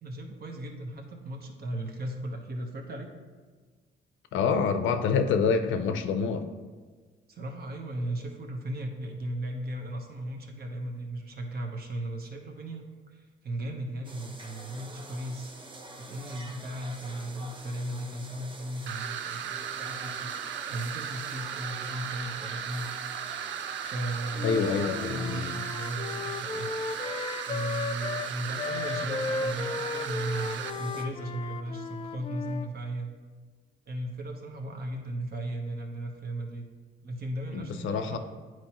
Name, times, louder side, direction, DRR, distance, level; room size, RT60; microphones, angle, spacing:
voice 1, 0.0-3.1 7.3-12.8 13.1-15.5 16.0-20.3 20.7-22.9 23.9-26.7 27.5-33.1 33.9-36.6 37.0-38.2, right 1 dB, 50° right, 3 dB, 1.1 m, -36 dB
voice 2, 4.3-6.4 24.4-25.5 37.5-38.2, left 5 dB, 75° left, 8 dB, 0.6 m, -27 dB
sound 1, 14.0-31.0, right 2 dB, 25° right, 0.8 m, -46 dB
sound 2, 18.9-30.7, right 9 dB, 70° right, 0.4 m, -36 dB
Wind instrument woodwind instrument, 24.3-32.7, left 4 dB, 30° left, 0.4 m, -35 dB
9.0 x 4.5 x 3.0 m, 1.5 s
cardioid pair, 90°, 20 cm